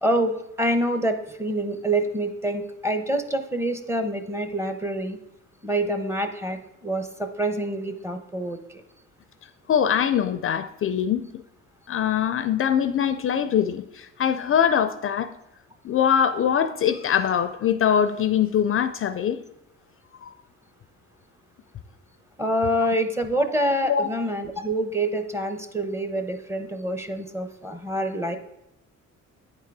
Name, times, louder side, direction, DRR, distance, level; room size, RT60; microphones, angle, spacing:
voice 1, 0.0-5.2 5.6-8.6 22.4-28.4, right 1 dB, 10° right, 7 dB, 0.7 m, -26 dB
voice 2, 9.7-11.2 11.9-15.3 15.8-19.4 20.2-20.3 22.8-22.9 23.9-24.1, left 8 dB, 45° left, 11 dB, 0.4 m, -23 dB
9.0 x 3.7 x 4.6 m, 0.83 s
cardioid pair, 90°, 30 cm